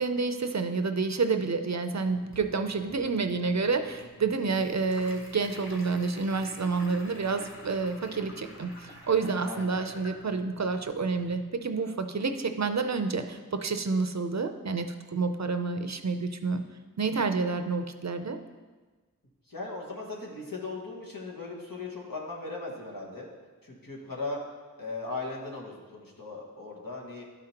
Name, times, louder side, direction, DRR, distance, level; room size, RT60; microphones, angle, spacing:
voice 1, 0.0-16.6 17.0-18.4, right 4 dB, 55° right, 8 dB, 0.5 m, -29 dB
sound 1, 1.9-11.4, equal, 35° left, 1.6 m, -49 dB
voice 2, 9.5-9.8 19.5-23.3 23.6-24.4 24.8-27.2, left 3 dB, 80° left, -4 dB, 1.6 m, -38 dB
12.0 x 5.1 x 2.9 m, 1.3 s
wide cardioid pair, 50°, 34 cm